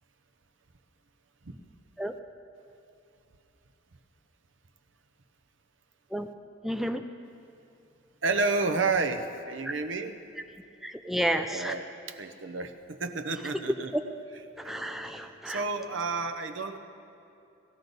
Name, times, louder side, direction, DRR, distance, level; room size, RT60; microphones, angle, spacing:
voice 1, 6.6-7.0 9.6-9.7 10.8-11.7 13.9-14.0 14.6-15.6, equal, ahead, 5 dB, 0.4 m, -31 dB
voice 2, 8.2-10.2 11.5-14.0 14.3-14.8 15.5-16.8, right 3 dB, 75° right, 8 dB, 0.8 m, -31 dB
19.0 x 13.5 x 4.0 m, 2.7 s
head